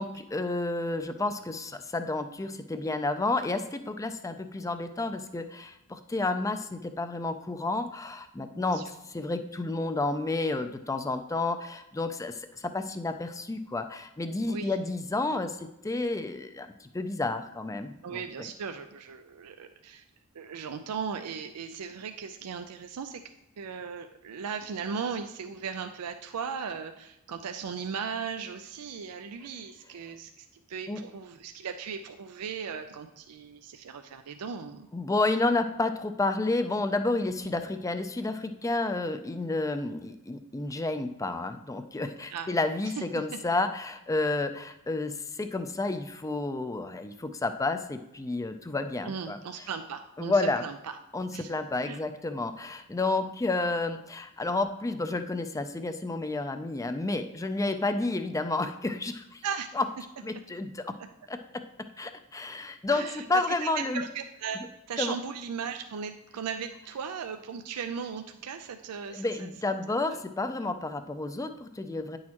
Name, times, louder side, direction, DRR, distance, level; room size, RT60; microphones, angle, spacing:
voice 1, 0.0-18.5 30.9-31.0 34.9-49.4 50.2-50.6 51.1-59.4 59.7-59.8 60.2-61.0 61.3-61.6 62.0-64.0 65.0-65.1 69.1-72.2, left 2 dB, 15° left, 9 dB, 0.4 m, -31 dB
voice 2, 18.0-20.0 20.3-23.2 23.6-34.9 37.4-37.6 42.3-42.5 49.1-50.8 51.3-51.5 51.8-52.0 59.4-59.7 62.9-63.2 63.6-64.6 64.9-69.5 69.9-70.2, right 6 dB, 85° right, 7 dB, 0.4 m, -37 dB
9.4 x 6.4 x 2.9 m, 0.92 s
head